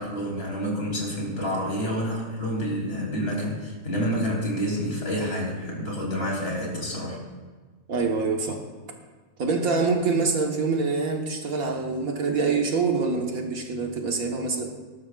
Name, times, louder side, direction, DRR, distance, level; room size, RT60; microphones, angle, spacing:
voice 1, 0.0-7.2, equal, 40° left, -2 dB, 3.3 m, -28 dB
voice 2, 7.9-8.6 9.4-14.7, right 4 dB, 70° right, 2 dB, 1.8 m, -25 dB
19.5 x 12.0 x 2.4 m, 1.4 s
omnidirectional pair, 1.5 m